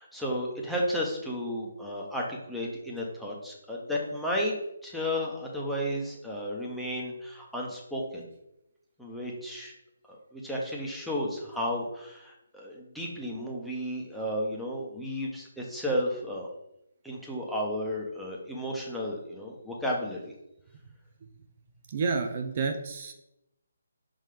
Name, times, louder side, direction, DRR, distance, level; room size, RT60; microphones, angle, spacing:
voice 1, 0.0-4.5 4.8-8.3 9.0-9.7 10.3-16.5 17.0-20.3, equal, ahead, -4 dB, 1.1 m, -33 dB
voice 2, 21.9-23.1, right 4 dB, 40° right, 5 dB, 0.6 m, -30 dB
5.4 x 3.8 x 5.0 m, 0.87 s
figure-of-eight pair, 150°, 0 cm